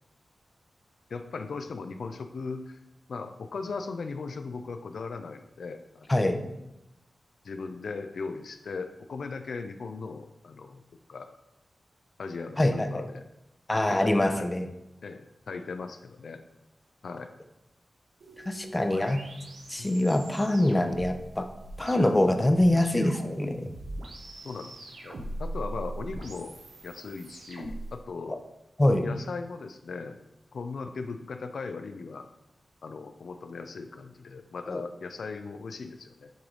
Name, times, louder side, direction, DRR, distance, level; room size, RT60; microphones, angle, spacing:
voice 1, 1.1-2.8 3.1-6.2 7.4-10.8 11.1-11.3 12.2-13.2 13.7-14.5 15.0-16.4 17.0-17.3 19.8-19.9 22.3-22.4 24.4-26.6 26.8-28.4 29.0-30.2 30.5-32.3 32.8-36.3, left 4 dB, 80° left, 7 dB, 0.4 m, -38 dB
voice 2, 12.6-13.0 13.7-14.7 18.5-19.2 19.7-21.5 21.8-23.7 28.3-28.4 28.8-29.1 34.7-34.8, left 1 dB, 25° left, 7 dB, 0.6 m, -24 dB
sound 1, 18.2-28.0, right 1 dB, 90° right, 0.8 m, -41 dB
8.8 x 3.4 x 3.9 m, 0.90 s
cardioid pair, 65°, 0 cm